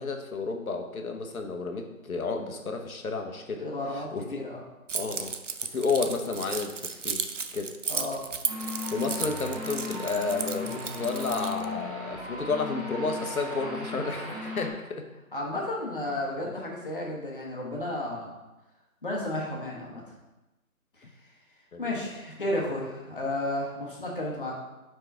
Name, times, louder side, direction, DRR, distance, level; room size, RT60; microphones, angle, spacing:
voice 1, 0.0-3.6 3.9-4.4 4.9-5.3 5.7-7.2 7.5-7.7 8.9-15.0 16.4-16.5 21.7-21.9, left 4 dB, 75° left, 4 dB, 1.0 m, -31 dB
voice 2, 3.5-4.6 7.9-8.3 15.3-18.3 19.0-20.0 21.0-21.1 21.8-24.6, left 1 dB, 35° left, -3 dB, 1.0 m, -33 dB
Keys jangling, 4.9-11.7, right 5 dB, 60° right, 0.5 m, -34 dB
sound 1, 8.5-14.7, left 2 dB, 25° right, 1.3 m, -36 dB
4.9 x 4.7 x 4.5 m, 1.0 s
figure-of-eight pair, 175°, 43 cm